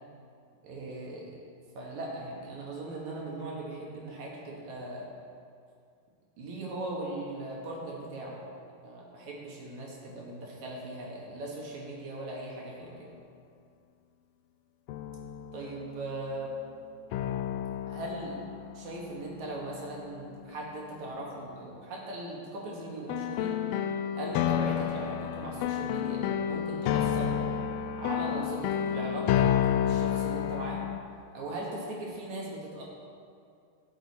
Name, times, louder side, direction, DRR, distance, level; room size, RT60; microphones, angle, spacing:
voice 1, 0.6-1.4 1.8-5.1 6.4-8.5 8.8-13.1 15.5-16.5 17.9-18.4 18.7-23.6 24.2-27.4 28.0-29.5 29.8-30.8 31.3-32.8, right 2 dB, 60° right, -3 dB, 2.6 m, -39 dB
sound 1, 12.8-12.9 14.9-15.9 17.1-20.4 23.1-31.0, left 10 dB, 80° left, 2.2 m, -30 dB
14.5 x 6.7 x 4.2 m, 2.3 s
omnidirectional pair, 4.0 m